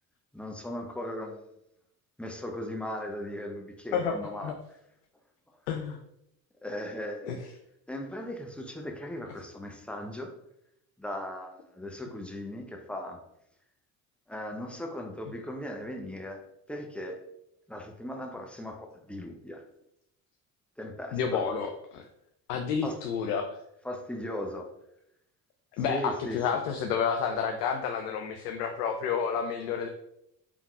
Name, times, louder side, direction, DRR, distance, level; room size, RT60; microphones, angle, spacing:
voice 1, 0.3-1.4 2.2-4.5 6.6-7.4 7.9-10.3 11.0-13.2 14.3-17.2 17.7-19.6 20.8-21.4 22.8-23.0 23.8-24.7 25.9-26.4, left 1 dB, 5° left, 3 dB, 0.6 m, -38 dB
voice 2, 3.9-4.5 5.7-6.0 7.3-7.4 21.1-22.0 22.5-23.6 25.8-29.9, left 6 dB, 80° left, 5 dB, 0.5 m, -30 dB
4.7 x 3.5 x 2.3 m, 0.79 s
hypercardioid pair, 55°, 46 cm